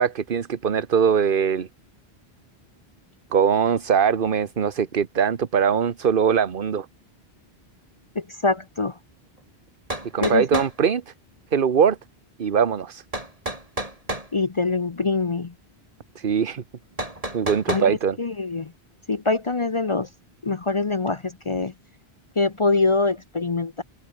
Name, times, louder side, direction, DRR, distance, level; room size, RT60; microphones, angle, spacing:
voice 1, 0.0-1.7 3.3-6.9 10.1-11.1 11.5-12.0 12.4-13.0 16.2-16.6 17.3-18.2, right 7 dB, 55° right, 1.2 m, -21 dB
voice 2, 8.2-8.9 10.2-10.6 14.3-15.5 17.7-18.7 19.1-20.1 20.4-21.7 22.4-23.8, left 3 dB, 35° left, 0.7 m, -24 dB
sound 1, 9.4-9.5 9.9-10.8 13.1-14.3 17.0-17.9, right 1 dB, 35° right, 4.3 m, -30 dB
omnidirectional pair, 1.1 m